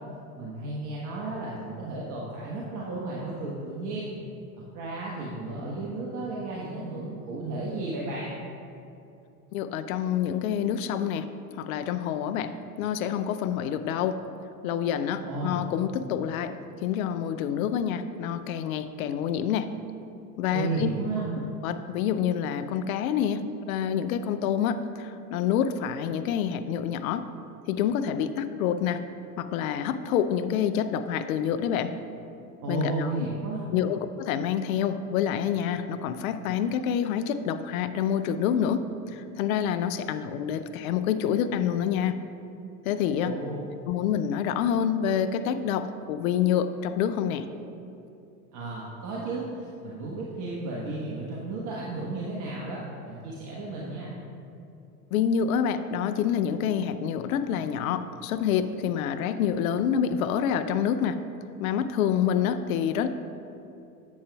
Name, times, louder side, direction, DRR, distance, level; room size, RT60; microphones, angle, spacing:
voice 1, 0.3-4.1 4.7-8.4 15.2-15.6 20.5-21.3 32.6-33.6 43.2-43.6 48.5-54.1, right 2 dB, 40° right, -4 dB, 1.3 m, -33 dB
voice 2, 9.5-11.3 11.6-14.2 14.6-19.7 20.4-20.9 21.6-27.3 27.7-29.0 29.4-31.9 32.7-33.1 33.7-38.9 39.1-42.1 42.8-43.3 43.9-47.4 55.1-61.2 61.6-63.1, left 8 dB, 65° left, 11 dB, 0.6 m, -27 dB
10.0 x 7.9 x 2.3 m, 2.7 s
hypercardioid pair, 85°, 46 cm